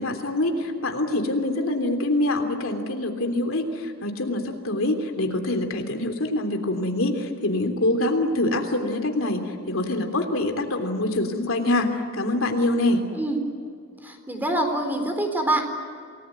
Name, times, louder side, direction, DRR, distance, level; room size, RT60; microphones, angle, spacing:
voice 1, 0.0-13.0, left 1 dB, 70° left, 5 dB, 3.3 m, -25 dB
voice 2, 14.0-15.6, right 1 dB, 10° right, 5 dB, 4.2 m, -25 dB
28.5 x 19.5 x 9.4 m, 2.3 s
head